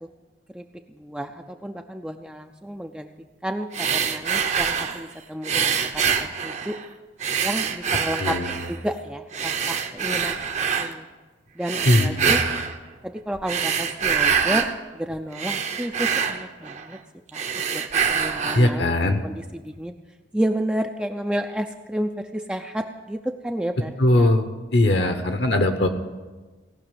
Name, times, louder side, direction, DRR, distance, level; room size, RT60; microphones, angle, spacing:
voice 1, 0.5-3.1 3.4-6.0 6.4-6.8 7.4-8.4 8.7-11.1 11.6-12.4 13.0-14.7 14.9-17.0 17.3-17.4 17.7-17.8 18.1-20.0 20.3-24.3 25.0-25.2, right 1 dB, 5° right, 5 dB, 0.4 m, -31 dB
sound 1, 3.7-5.0 5.4-6.9 7.2-8.8 9.3-10.9 11.6-12.8 13.3-14.7 15.1-17.0 17.3-18.7, right 7 dB, 35° right, 0.8 m, -25 dB
voice 2, 8.2-8.5 11.9-12.6 18.5-19.2 24.0-25.9, left 1 dB, 60° left, 7 dB, 0.9 m, -20 dB
17.5 x 5.9 x 9.0 m, 1.3 s
head